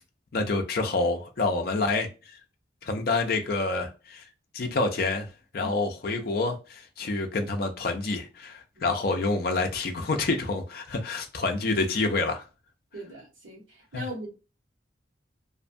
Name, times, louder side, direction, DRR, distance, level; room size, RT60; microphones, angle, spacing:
voice 1, 0.3-2.4 2.8-4.2 4.5-12.5 13.9-14.0, left 3 dB, 50° left, 0.4 m, -28 dB
voice 2, 12.9-14.3, equal, 90° right, 1.2 m, -39 dB
2.5 x 2.2 x 2.6 m
head